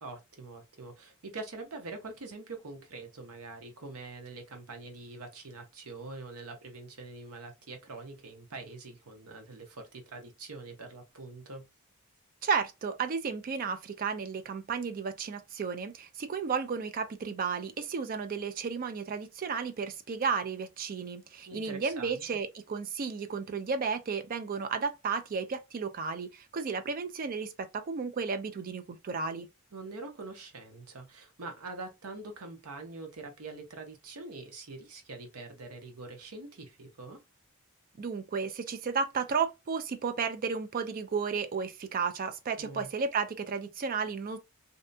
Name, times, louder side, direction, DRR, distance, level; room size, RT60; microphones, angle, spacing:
voice 1, 0.0-11.6 21.5-22.2 29.7-37.2 42.6-42.9, right 3 dB, 80° right, 0.8 m, -44 dB
voice 2, 12.4-29.5 38.0-44.4, right 5 dB, 40° right, 0.4 m, -33 dB
2.6 x 2.2 x 2.6 m
head